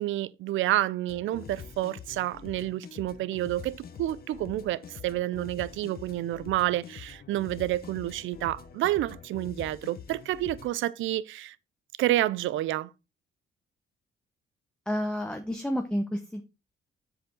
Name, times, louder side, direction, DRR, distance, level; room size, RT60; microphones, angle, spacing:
voice 1, 0.0-11.6 12.0-12.9, right 14 dB, 80° right, 0.5 m, -29 dB
sound 1, 1.1-10.7, left 7 dB, 50° left, 0.9 m, -45 dB
voice 2, 14.9-16.4, equal, 5° left, 0.8 m, -30 dB
7.6 x 5.0 x 3.7 m
cardioid pair, 90°, 20 cm